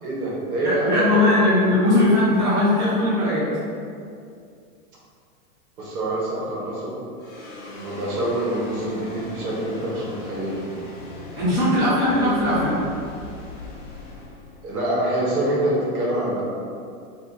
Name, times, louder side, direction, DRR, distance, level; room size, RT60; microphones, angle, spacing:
voice 1, 0.0-1.2 5.8-6.9 7.7-10.6 14.6-16.4, right 1 dB, 70° right, -5 dB, 1.2 m, -25 dB
voice 2, 0.6-3.5 11.4-12.8, left 1 dB, 10° right, -15 dB, 0.9 m, -19 dB
sound 1, 7.2-15.7, left 2 dB, 40° left, 0.6 m, -39 dB
2.7 x 2.5 x 3.7 m, 2.3 s
supercardioid pair, 165°, 45 cm